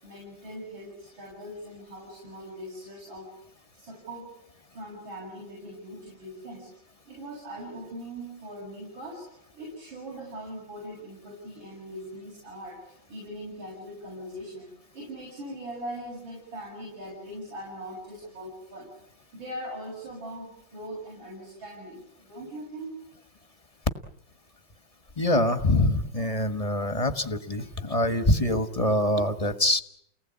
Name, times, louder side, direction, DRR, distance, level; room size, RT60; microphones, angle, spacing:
voice 1, 0.0-3.4 3.7-4.3 4.7-6.7 7.1-9.3 9.5-14.7 14.9-18.9 19.3-22.9, equal, 80° right, -3 dB, 8.8 m, -41 dB
voice 2, 25.2-29.8, left 1 dB, 25° left, 10 dB, 1.0 m, -24 dB
30.0 x 19.0 x 8.6 m, 0.74 s
omnidirectional pair, 2.1 m